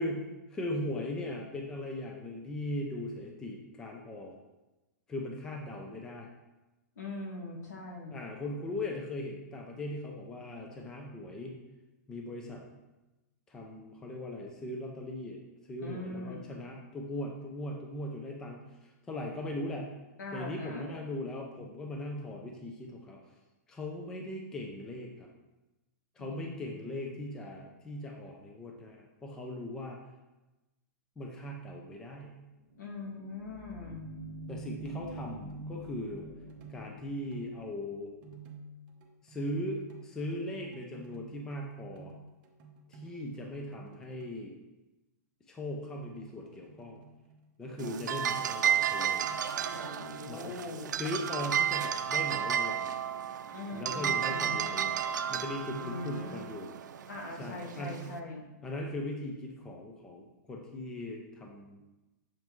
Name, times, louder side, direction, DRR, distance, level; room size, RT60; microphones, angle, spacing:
voice 1, 0.0-4.3 5.1-6.3 8.1-11.6 12.1-12.6 13.5-15.4 15.7-19.9 20.3-23.2 23.7-25.3 26.2-30.0 31.2-32.4 34.5-36.3 36.7-38.1 39.2-42.1 42.9-44.5 45.5-47.0 47.6-49.3 50.3-52.9 53.7-55.0 55.3-56.7 57.4-58.1 58.6-61.8, left 1 dB, 5° left, 0 dB, 0.4 m, -39 dB
voice 2, 7.0-8.2 15.8-16.5 20.2-21.0 26.2-26.8 32.8-34.1 49.7-50.9 53.5-54.7 55.8-56.4 57.1-58.5, left 2 dB, 70° left, 1 dB, 1.7 m, -41 dB
sound 1, 32.6-38.2, right 2 dB, 45° left, 1.8 m, -46 dB
sound 2, 34.9-35.7 36.2-37.7 38.2-44.3 45.6-49.7, right 3 dB, 35° right, 0.8 m, -53 dB
sound 3, 47.8-58.2, right 9 dB, 80° right, 0.5 m, -32 dB
7.1 x 5.3 x 3.0 m, 1.0 s
hypercardioid pair, 175°, 10 cm